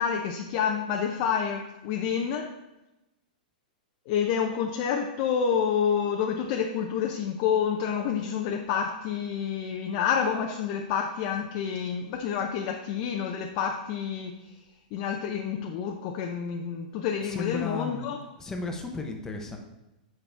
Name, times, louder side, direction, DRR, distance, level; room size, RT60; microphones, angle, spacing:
voice 1, 0.0-2.5 4.1-14.3 14.9-18.2, left 7 dB, 35° left, 2 dB, 0.6 m, -28 dB
voice 2, 17.2-18.1 18.4-19.6, left 3 dB, 10° left, 3 dB, 0.9 m, -34 dB
8.4 x 6.1 x 3.4 m, 0.97 s
hypercardioid pair, 155°, 5 cm